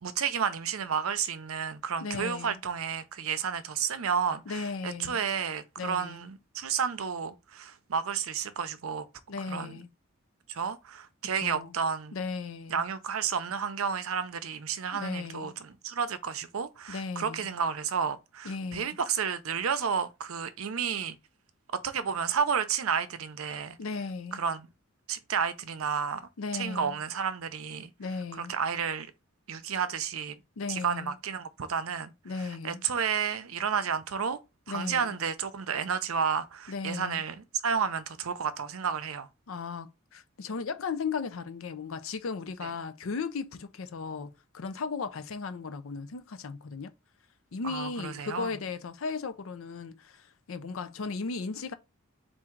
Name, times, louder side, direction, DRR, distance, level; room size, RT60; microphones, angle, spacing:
voice 1, 0.0-9.1 9.5-9.8 10.5-12.2 12.7-21.2 21.8-23.8 24.3-24.7 25.1-27.9 28.3-29.1 29.5-30.4 30.7-34.4 34.7-39.3 42.6-42.7 47.6-48.6, right 7 dB, 75° right, 0.6 m, -31 dB
voice 2, 2.0-2.6 4.5-5.2 5.8-6.2 9.3-9.9 11.4-11.8 12.1-12.8 14.9-15.6 16.9-17.5 18.4-19.0 23.8-24.4 26.4-27.0 28.0-28.6 30.6-31.1 32.2-32.8 34.7-35.2 36.7-37.2 39.5-46.9 47.5-51.7, left 4 dB, 70° left, 0.5 m, -36 dB
3.6 x 2.6 x 4.5 m
head